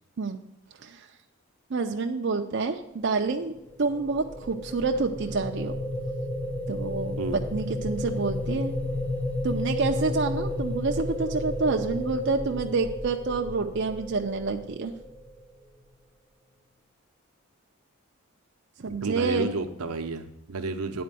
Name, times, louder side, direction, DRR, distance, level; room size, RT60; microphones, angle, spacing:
voice 1, 1.7-5.7 6.7-8.7 9.4-14.9 18.8-19.5, right 4 dB, 50° right, 4 dB, 0.5 m, -28 dB
sound 1, 3.4-15.6, left 1 dB, 10° left, 0.6 m, -32 dB
voice 2, 18.9-21.0, right 3 dB, 85° right, 7 dB, 0.8 m, -31 dB
9.4 x 4.3 x 7.5 m, 0.84 s
head